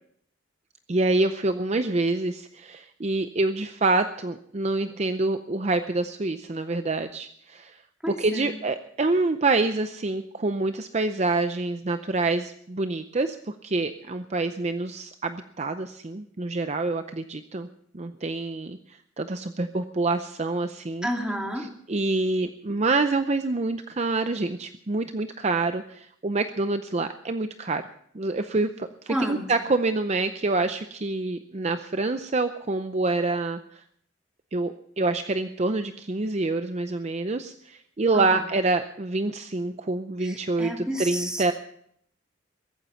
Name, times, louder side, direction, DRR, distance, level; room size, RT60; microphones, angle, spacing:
voice 1, 0.9-7.8 8.2-17.7 17.9-21.1 21.9-27.8 28.1-33.8 34.5-41.5, right 3 dB, 35° right, 9 dB, 0.6 m, -26 dB
voice 2, 8.0-8.6 21.0-21.7 29.1-29.4 38.1-38.4 40.2-41.5, equal, 5° right, 1 dB, 2.6 m, -31 dB
21.5 x 9.3 x 5.7 m, 0.68 s
head